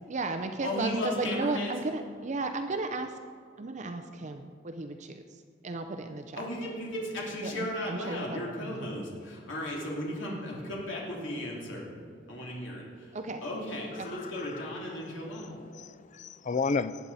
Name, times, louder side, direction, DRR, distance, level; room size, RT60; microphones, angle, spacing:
voice 1, 0.0-3.2 3.6-5.2 5.6-6.5 7.4-8.9 13.1-13.4 14.0-14.1, right 3 dB, 40° right, 0.6 m, -34 dB
voice 2, 0.6-1.7 6.4-11.9 12.3-13.1 13.4-15.5, left 1 dB, 80° left, 3.0 m, -35 dB
voice 3, 13.9-14.7 15.3-17.0, left 4 dB, 40° left, 0.4 m, -33 dB
19.5 x 8.5 x 4.1 m
head